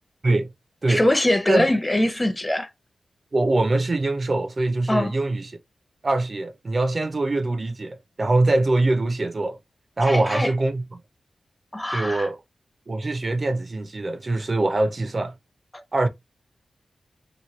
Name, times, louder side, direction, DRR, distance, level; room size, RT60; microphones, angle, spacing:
voice 1, 0.9-2.7 4.9-5.1 10.0-10.5 11.7-12.3 15.7-15.8, left 1 dB, 20° left, 0.6 m, -22 dB
voice 2, 3.3-5.6 6.0-9.6 10.0-11.0 11.9-12.4 12.9-15.3 15.9-16.1, right 2 dB, 45° right, 0.5 m, -23 dB
2.9 x 2.2 x 3.0 m
cardioid pair, 45°, 0 cm